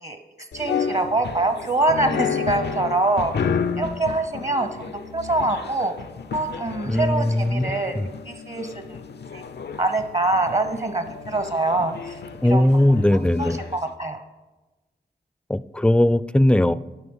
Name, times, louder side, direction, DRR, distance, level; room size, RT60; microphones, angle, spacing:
sound 1, 0.5-13.8, left 6 dB, 80° left, 0.5 m, -31 dB
voice 1, 0.5-5.9 6.3-7.9 8.3-9.0 9.3-9.4 9.8-12.2 12.5-12.6 13.4-14.2, right 2 dB, 45° right, 7 dB, 0.8 m, -24 dB
voice 2, 6.9-8.1 12.4-13.6 15.5-16.7, left 1 dB, 5° left, 16 dB, 0.3 m, -19 dB
11.5 x 5.5 x 5.5 m, 1.1 s
cardioid pair, 45°, 17 cm